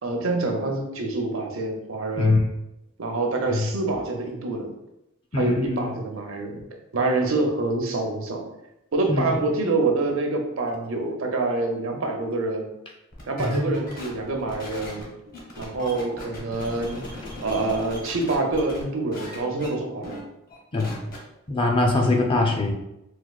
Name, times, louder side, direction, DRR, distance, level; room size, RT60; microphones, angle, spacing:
voice 1, 0.0-2.4 3.0-4.7 5.4-6.6 6.9-8.4 8.9-12.7 13.3-15.1 15.6-17.0 17.4-20.2, right 2 dB, 70° right, 2 dB, 0.6 m, -26 dB
voice 2, 5.3-5.9 9.1-9.4 13.4-13.8 20.7-21.0 21.5-22.7, left 2 dB, 25° left, 2 dB, 0.4 m, -23 dB
sound 1, 13.1-18.8 19.1-19.7 20.0-20.2 20.5-21.2, left 1 dB, 45° left, 0.9 m, -39 dB
4.2 x 2.3 x 2.3 m, 0.88 s
head